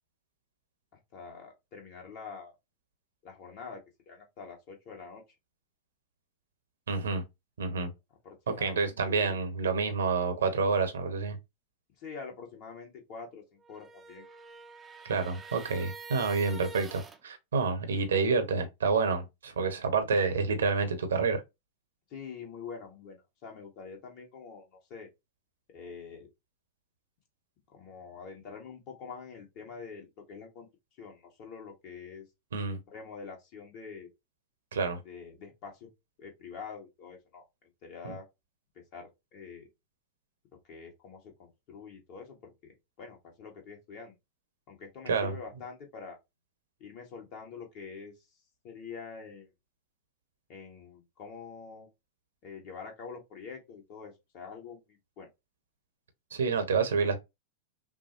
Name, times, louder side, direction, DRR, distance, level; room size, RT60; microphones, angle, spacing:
voice 1, 0.9-2.5 3.2-5.2 8.2-9.4 12.0-14.2 22.1-25.1 25.7-26.3 27.7-30.7 31.0-32.2 32.9-34.1 35.0-35.9 36.2-38.3 38.8-39.7 40.7-42.7 43.0-44.1 44.7-46.2 46.8-48.1 48.6-49.5 50.5-51.9 52.4-55.3, left 5 dB, 45° left, 1.9 m, -46 dB
voice 2, 6.9-7.2 7.6-7.9 8.5-11.4 15.0-21.4 32.5-32.8 34.7-35.0 38.0-38.2 45.1-45.3 56.3-57.2, right 4 dB, 65° right, 1.0 m, -28 dB
sound 1, 13.6-17.2, right 5 dB, 15° right, 0.7 m, -46 dB
5.8 x 2.2 x 2.9 m
figure-of-eight pair, 90°, 0 cm